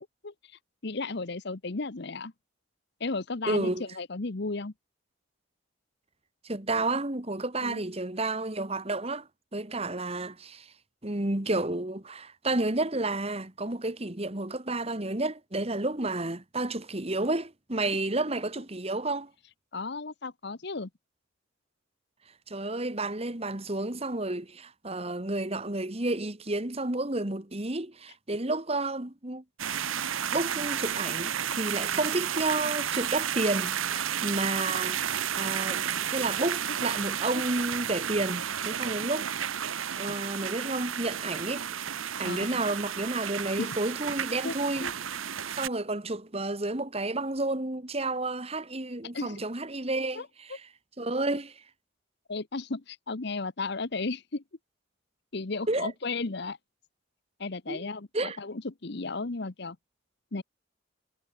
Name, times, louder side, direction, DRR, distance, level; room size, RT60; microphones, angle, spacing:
voice 1, 0.8-2.3 3.0-4.7 7.6-7.8 19.7-20.9 31.8-32.1 37.3-37.4 42.2-42.6 43.6-43.8 44.4-44.9 49.1-49.4 50.1-50.3 52.3-54.4 55.3-56.6 57.4-59.8 60.3-60.4, left 3 dB, 55° left, 1.0 m, -34 dB
voice 2, 3.4-3.8 6.4-10.7 11.0-19.3 22.5-29.4 30.3-39.3 40.0-41.7 42.2-45.2 45.5-50.6 51.0-51.6 55.7-55.9 57.7-57.9 58.1-58.4, right 2 dB, 30° right, 1.7 m, -31 dB
sound 1, 29.6-45.7, right 9 dB, 85° right, 1.1 m, -32 dB
head